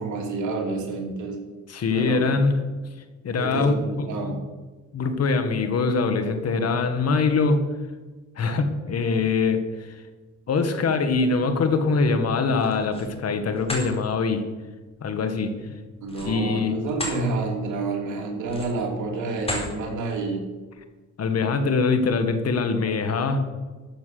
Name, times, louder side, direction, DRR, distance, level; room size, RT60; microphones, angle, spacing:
voice 1, 0.0-1.4 1.9-2.2 3.3-4.4 16.0-20.4, right 3 dB, 75° right, 1 dB, 3.1 m, -29 dB
voice 2, 1.7-2.6 3.2-3.7 4.2-4.4 4.9-7.6 8.4-9.6 10.5-14.4 15.0-15.5 16.2-16.8 21.2-23.4, left 4 dB, 55° left, 8 dB, 1.9 m, -23 dB
sound 1, 12.5-13.1 13.5-13.9 16.0-17.2 17.7-17.9 18.4-18.9 19.4-19.7, left 1 dB, 20° left, 4.4 m, -33 dB
13.5 x 7.4 x 6.7 m, 1.3 s
cardioid pair, 90°, 30 cm